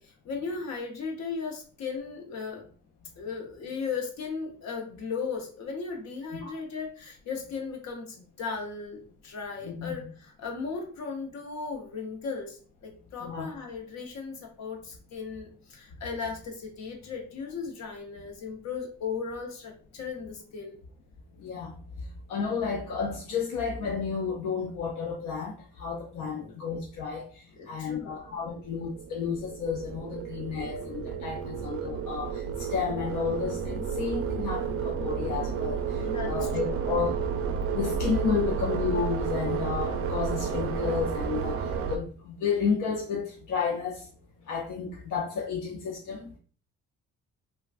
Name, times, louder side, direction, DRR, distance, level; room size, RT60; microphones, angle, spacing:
voice 1, 0.0-2.6 3.2-20.8 26.3-26.5 27.6-28.2 36.0-36.3 36.6-36.7, left 5 dB, 60° left, 2 dB, 0.9 m, -36 dB
voice 2, 9.6-10.0 13.2-13.5 21.4-21.8 22.3-27.3 27.7-37.2 37.7-44.1 44.5-46.3, left 6 dB, 85° left, 0 dB, 0.6 m, -31 dB
sound 1, 28.3-42.0, right 6 dB, 50° right, 0.4 m, -31 dB
3.2 x 2.3 x 2.3 m, 0.40 s
cardioid pair, 90°, 30 cm